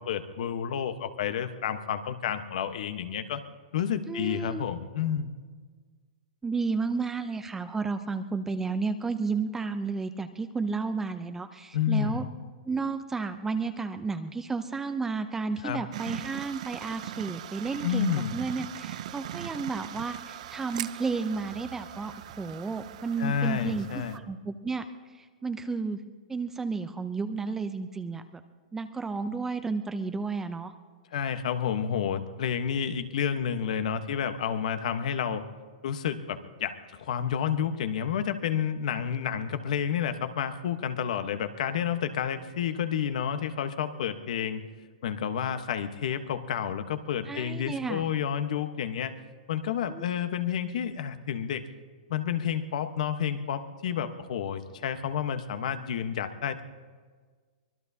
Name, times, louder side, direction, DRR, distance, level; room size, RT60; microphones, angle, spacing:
voice 1, 0.0-3.4 3.7-5.3 11.7-12.3 15.6-15.8 17.8-18.4 23.2-24.2 31.1-35.4 35.8-44.6 45.0-49.2 49.5-51.7 52.1-56.6, left 8 dB, 65° left, 9 dB, 1.1 m, -30 dB
voice 2, 4.1-4.6 6.4-12.2 12.6-24.8 25.1-26.0 26.3-28.4 28.7-30.7 47.3-48.0 49.9-50.1, right 4 dB, 10° right, 9 dB, 0.5 m, -32 dB
sound 1, 15.9-24.2, right 11 dB, 60° right, 0.6 m, -40 dB
24.5 x 19.5 x 2.8 m, 1.5 s
hypercardioid pair, 150°, 4 cm